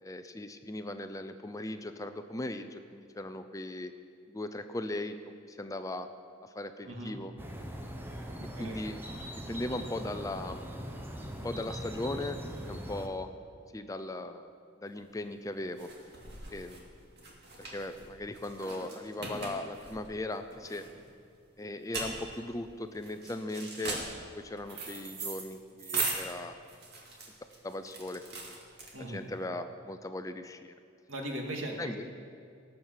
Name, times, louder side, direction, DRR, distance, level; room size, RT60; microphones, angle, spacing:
voice 1, 0.0-3.9 4.3-6.1 6.4-7.3 8.5-9.0 9.5-10.7 11.4-12.4 12.6-13.3 13.7-14.5 14.8-15.9 16.5-16.9 17.6-20.8 21.6-26.6 27.6-28.6 29.1-30.7 31.8-32.0, left 1 dB, 15° left, 9 dB, 0.5 m, -38 dB
voice 2, 6.8-7.1 8.4-8.8 28.9-29.2 31.1-32.2, right 1 dB, 80° right, 1 dB, 2.0 m, -39 dB
sound 1, 7.4-13.1, equal, 10° right, 1.0 m, -41 dB
sound 2, 15.0-29.3, right 3 dB, 55° right, 2.2 m, -40 dB
17.5 x 6.5 x 7.3 m, 2.3 s
head